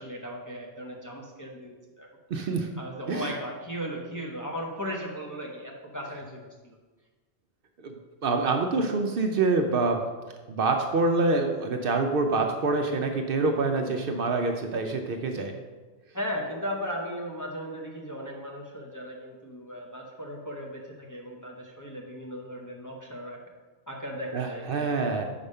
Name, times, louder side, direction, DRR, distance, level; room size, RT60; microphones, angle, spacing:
voice 1, 0.0-2.1 2.8-6.8 16.1-23.4 23.9-25.2, equal, 20° left, -2 dB, 0.6 m, -37 dB
voice 2, 2.3-2.7 3.1-3.3 7.8-8.0 8.2-10.0 10.5-15.5 24.3-25.2, right 3 dB, 60° right, 4 dB, 0.7 m, -26 dB
5.2 x 4.8 x 5.4 m, 1.3 s
omnidirectional pair, 1.2 m